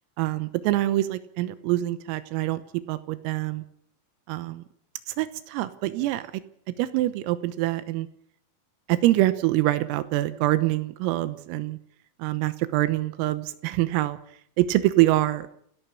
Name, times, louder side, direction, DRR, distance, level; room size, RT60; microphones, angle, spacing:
voice 1, 0.2-2.6 2.9-3.6 4.3-4.6 5.2-6.3 6.8-8.1 8.9-11.8 12.2-14.2 14.6-15.5, right 16 dB, 85° right, 13 dB, 3.7 m, -25 dB
29.5 x 11.5 x 8.4 m, 0.68 s
omnidirectional pair, 5.9 m